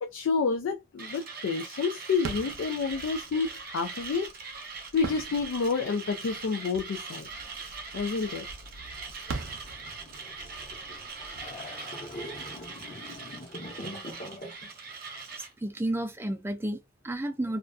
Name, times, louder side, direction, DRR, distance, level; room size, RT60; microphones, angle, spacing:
voice 1, 0.0-4.3 4.9-7.3 7.9-8.5, left 5 dB, 75° left, 0.3 m, -29 dB
Mechanisms, 1.0-15.5, right 4 dB, 50° right, 0.7 m, -41 dB
sound 1, 2.1-12.7, right 4 dB, 90° right, 0.5 m, -44 dB
sound 2, 7.0-14.7, left 1 dB, 45° left, 0.8 m, -45 dB
voice 2, 15.3-17.6, right 1 dB, 10° right, 0.4 m, -32 dB
2.4 x 2.3 x 2.3 m
head